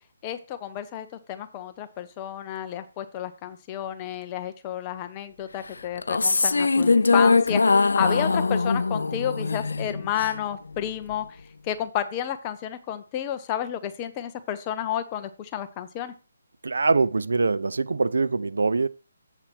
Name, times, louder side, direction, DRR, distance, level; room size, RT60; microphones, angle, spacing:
voice 1, 0.2-16.1, left 10 dB, 15° left, 0.5 m, -31 dB
sound 1, 5.9-10.4, left 4 dB, 90° left, 0.4 m, -22 dB
voice 2, 16.6-18.9, right 3 dB, 80° right, 0.5 m, -23 dB
7.7 x 4.5 x 6.0 m
hypercardioid pair, 175°, 0 cm